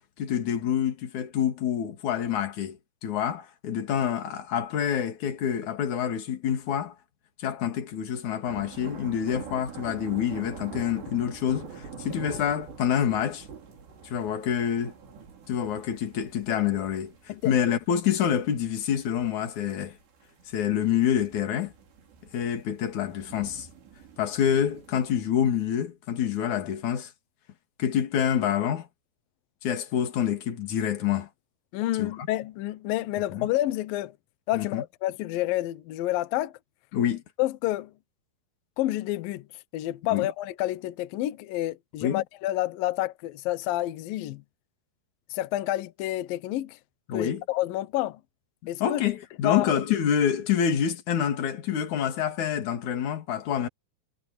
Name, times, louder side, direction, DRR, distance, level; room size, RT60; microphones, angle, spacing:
voice 1, 0.2-6.9 7.4-13.4 14.0-14.9 15.5-17.1 17.4-19.9 20.5-21.7 22.3-23.7 24.2-27.1 27.8-28.9 29.6-31.3 32.0-32.2 33.3-33.5 34.5-34.8 36.9-37.2 40.1-40.3 42.0-42.2 47.1-47.4 48.8-53.7, left 9 dB, 45° left, 3.3 m, -27 dB
sound 1, 8.5-25.2, right 6 dB, 65° right, 6.5 m, -45 dB
voice 2, 31.7-34.1 34.5-36.5 37.4-37.9 38.8-39.5 39.7-44.4 45.3-46.8 47.1-48.2 48.7-49.0 49.4-49.7, left 15 dB, 80° left, 2.1 m, -29 dB
omnidirectional pair, 5.4 m